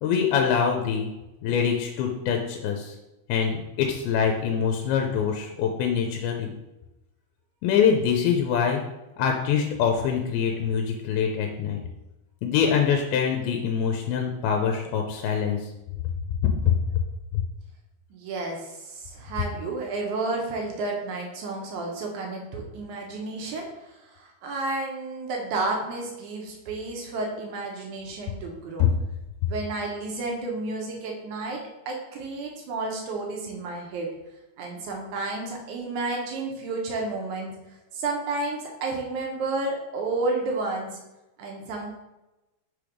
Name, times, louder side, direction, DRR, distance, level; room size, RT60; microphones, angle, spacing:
voice 1, 0.0-1.1 1.4-2.9 3.3-3.5 3.8-6.5 7.6-8.8 9.2-11.8 12.4-15.6 16.4-17.0 17.3-17.4 28.8-28.9, left 7 dB, 80° left, 3 dB, 2.4 m, -24 dB
voice 2, 18.1-28.9 29.5-31.6 31.9-34.1 34.6-37.5 37.9-40.9 41.4-41.9, right 3 dB, 75° right, 0 dB, 1.8 m, -31 dB
6.2 x 3.4 x 5.0 m, 0.99 s
omnidirectional pair, 4.5 m